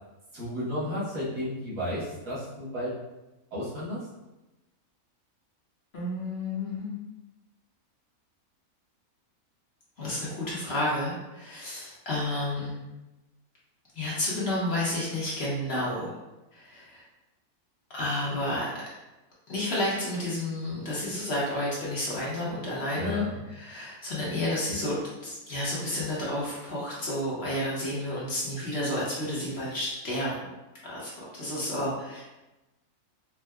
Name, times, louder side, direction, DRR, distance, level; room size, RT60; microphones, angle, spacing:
voice 1, 0.3-2.9 3.5-4.1 23.0-23.4, left 1 dB, 90° right, -9 dB, 1.8 m, -33 dB
voice 2, 5.9-7.0 10.0-12.9 13.9-16.2 16.5-17.0 17.9-18.7 19.5-30.5 30.8-32.2, left 1 dB, 50° left, -7 dB, 0.9 m, -31 dB
4.4 x 2.0 x 2.2 m, 1.0 s
omnidirectional pair, 1.6 m